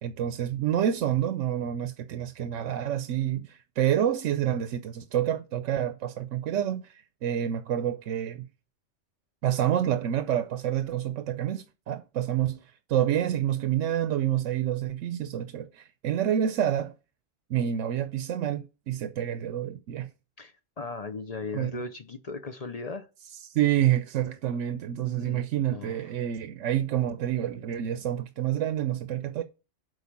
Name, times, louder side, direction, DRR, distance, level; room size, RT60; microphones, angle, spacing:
voice 1, 0.0-8.5 9.4-16.9 17.5-20.1 21.5-21.8 23.5-29.4, right 10 dB, 80° right, 1.0 m, -28 dB
voice 2, 20.4-23.1 25.2-25.4 25.7-26.0, left 4 dB, 40° left, 0.6 m, -37 dB
8.0 x 4.9 x 7.2 m
omnidirectional pair, 1.3 m